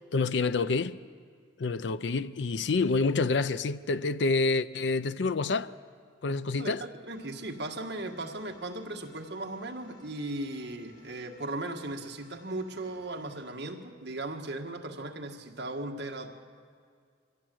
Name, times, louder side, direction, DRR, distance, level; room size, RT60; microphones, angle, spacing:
voice 1, 0.1-1.0 1.6-5.7 6.2-6.8, left 3 dB, 65° left, 0.5 m, -27 dB
voice 2, 7.0-16.3, right 2 dB, 60° right, 1.7 m, -37 dB
sound 1, 7.1-13.5, left 2 dB, 90° left, 6.1 m, -60 dB
24.0 x 16.5 x 7.8 m
head